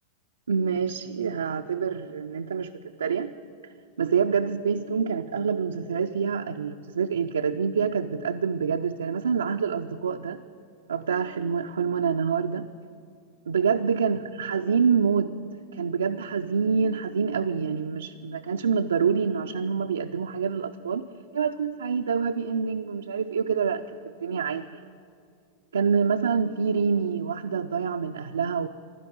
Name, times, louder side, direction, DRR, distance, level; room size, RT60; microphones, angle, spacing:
voice 1, 0.5-2.7 3.0-3.3 4.0-10.4 10.9-12.7 13.5-15.4 15.7-21.0 21.3-24.8 25.7-28.7, right 6 dB, 70° right, 5 dB, 0.4 m, -26 dB
12.0 x 11.0 x 9.0 m, 2.3 s
figure-of-eight pair, 90°, 0 cm